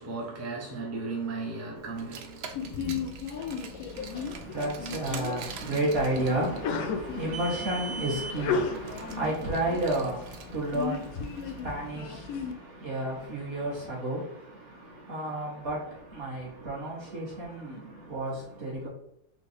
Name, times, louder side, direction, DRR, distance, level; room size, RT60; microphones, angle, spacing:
voice 1, 0.0-3.1, right 3 dB, 15° right, 0.6 m, -36 dB
Car, 1.9-11.4, right 5 dB, 80° right, 0.5 m, -42 dB
Sneeze, 2.5-12.5, left 5 dB, 75° left, 1.0 m, -35 dB
voice 2, 3.9-18.9, right 1 dB, 40° right, 1.6 m, -32 dB
4.1 x 2.5 x 4.2 m
omnidirectional pair, 1.6 m